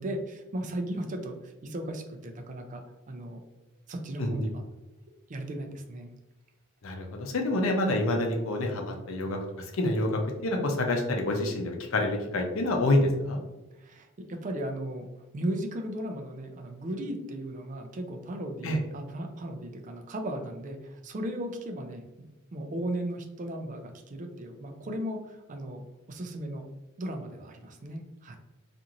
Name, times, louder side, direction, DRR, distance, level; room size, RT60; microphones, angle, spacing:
voice 1, 0.0-2.8 3.1-3.4 3.9-4.6 5.3-6.1 13.8-15.1 15.3-26.7 27.0-28.4, right 1 dB, 40° right, 4 dB, 0.4 m, -36 dB
voice 2, 6.8-13.4 18.6-18.8, left 1 dB, 75° left, 2 dB, 0.6 m, -27 dB
2.9 x 2.5 x 2.5 m, 1.0 s
head